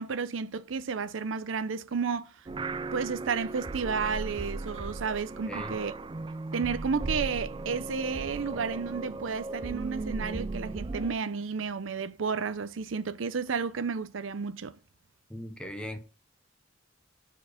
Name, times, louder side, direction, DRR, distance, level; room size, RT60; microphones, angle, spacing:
voice 1, 0.0-2.3 2.9-5.9 6.5-14.7, right 5 dB, 80° right, 0.6 m, -32 dB
sound 1, 2.5-11.2, right 3 dB, 25° right, 0.3 m, -36 dB
voice 2, 5.5-5.8 15.3-16.0, left 1 dB, 5° left, 0.9 m, -39 dB
7.1 x 4.6 x 4.9 m
head